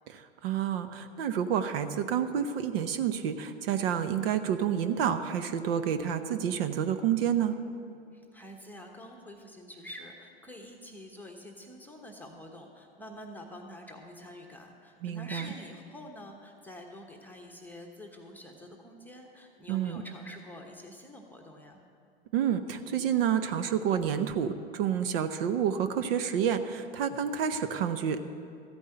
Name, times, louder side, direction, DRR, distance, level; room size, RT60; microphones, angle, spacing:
voice 1, 0.1-7.6 15.0-15.5 19.7-20.0 22.3-28.3, right 8 dB, 60° right, 10 dB, 0.8 m, -29 dB
voice 2, 8.1-21.9, left 1 dB, 5° left, 1 dB, 1.0 m, -47 dB
14.0 x 5.4 x 8.8 m, 2.4 s
hypercardioid pair, 110°, 33 cm